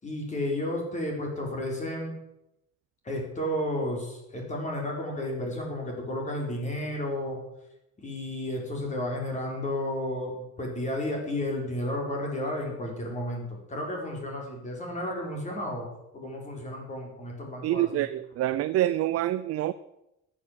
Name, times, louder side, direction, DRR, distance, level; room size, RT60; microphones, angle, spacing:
voice 1, 0.0-2.2 3.0-7.4 8.0-15.9 16.1-18.1, left 1 dB, 25° left, 0 dB, 4.9 m, -32 dB
voice 2, 17.6-19.7, right 13 dB, 55° right, 12 dB, 0.6 m, -26 dB
14.5 x 10.0 x 7.7 m, 0.87 s
cardioid pair, 150°, 29 cm